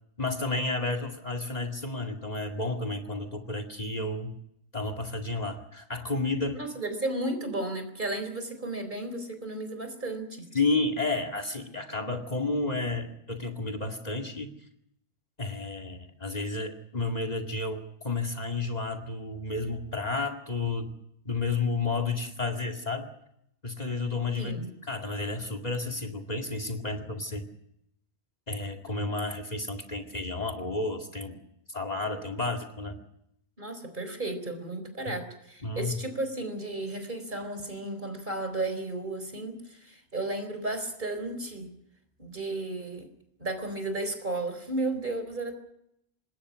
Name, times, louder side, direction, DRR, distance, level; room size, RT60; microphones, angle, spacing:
voice 1, 0.2-4.4 4.7-6.7 10.5-14.5 15.4-20.9 21.2-23.1 23.6-27.5 28.5-31.4 31.7-33.0 35.6-36.0, left 3 dB, 35° left, 8 dB, 2.4 m, -31 dB
voice 2, 6.5-10.5 24.4-24.7 33.6-41.7 42.2-43.1 43.4-45.6, right 2 dB, 45° right, 8 dB, 4.4 m, -34 dB
26.5 x 20.5 x 6.3 m, 0.78 s
omnidirectional pair, 1.2 m